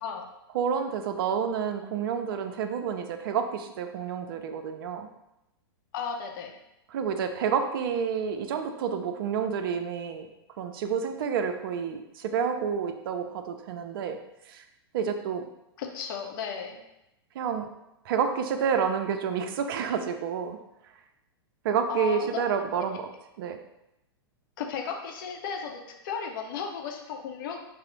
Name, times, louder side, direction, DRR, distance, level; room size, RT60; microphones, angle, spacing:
voice 1, 0.5-5.1 6.9-10.3 10.6-14.2 14.5-14.6 14.9-15.4 17.4-17.7 18.1-20.6 21.6-23.1 23.4-23.6, right 7 dB, 60° right, 7 dB, 0.4 m, -29 dB
voice 2, 5.9-6.5 15.8-16.8 21.9-22.4 24.6-27.6, left 6 dB, 55° left, 3 dB, 0.6 m, -35 dB
4.7 x 2.0 x 3.0 m, 0.89 s
hypercardioid pair, 110°, 13 cm